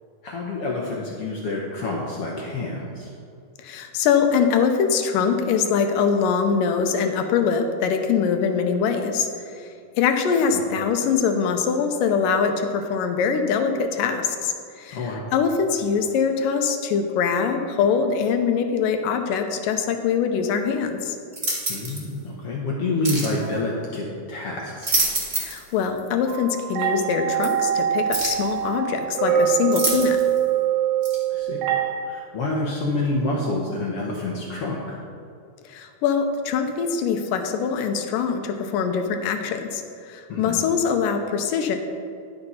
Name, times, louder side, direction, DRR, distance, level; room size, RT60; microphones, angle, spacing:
voice 1, 0.2-3.1 10.5-10.6 14.9-15.3 21.7-25.0 31.3-31.7 32.0-35.0 40.3-40.6, left 2 dB, 70° left, -2 dB, 1.4 m, -28 dB
voice 2, 3.6-9.3 10.0-15.0 15.3-21.2 25.4-30.2 35.7-39.8 40.1-41.8, left 6 dB, 85° left, 6 dB, 2.4 m, -23 dB
sound 1, 21.3-22.0 23.0-23.4 24.6-25.7 26.0-26.1 27.4-27.5 28.1-28.5 29.7-30.4 31.0-31.2, right 2 dB, 25° right, 0.9 m, -26 dB
sound 2, 26.3-31.9, right 10 dB, 65° right, 2.0 m, -24 dB
10.5 x 6.8 x 5.6 m, 2.4 s
omnidirectional pair, 3.8 m